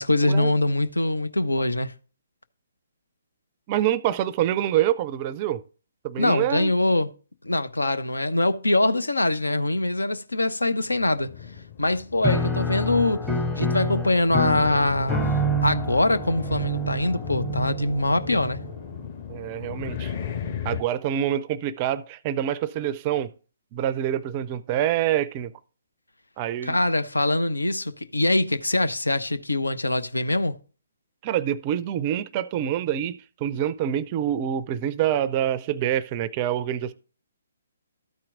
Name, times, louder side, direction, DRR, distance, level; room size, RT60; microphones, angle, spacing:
voice 1, 0.0-1.9 6.2-7.1 7.4-11.3 11.8-13.3 13.6-18.6 26.6-30.6, left 2 dB, 80° left, 0.7 m, -23 dB
voice 2, 3.7-5.6 6.0-6.7 19.3-20.1 20.6-23.3 23.7-25.5 26.4-26.8 31.2-36.9, right 11 dB, 30° right, 0.4 m, -26 dB
sound 1, 10.9-20.8, left 8 dB, 40° left, 1.5 m, -37 dB
Piano, 12.2-19.0, right 1 dB, 5° left, 0.8 m, -28 dB
13.0 x 4.4 x 3.7 m
figure-of-eight pair, 135°, 0 cm